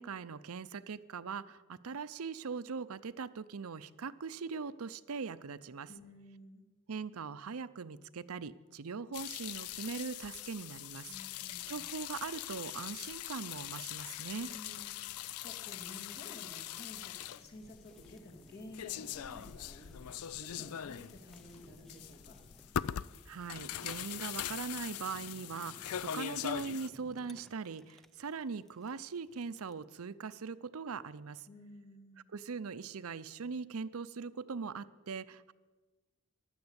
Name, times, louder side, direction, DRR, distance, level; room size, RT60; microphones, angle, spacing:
voice 1, 0.0-5.9 6.9-11.2 11.7-14.5 23.3-31.5 32.3-35.5, right 5 dB, 80° right, 14 dB, 0.6 m, -41 dB
voice 2, 5.9-6.7 11.1-11.9 14.4-15.0 15.4-20.1 20.3-22.4 31.5-32.2, left 1 dB, 45° left, 2 dB, 2.6 m, -52 dB
sound 1, 9.1-26.9, left 10 dB, 90° left, 0.4 m, -42 dB
Fire, 14.7-29.8, equal, ahead, 0.5 m, -60 dB
15.5 x 11.5 x 8.1 m, 1.3 s
head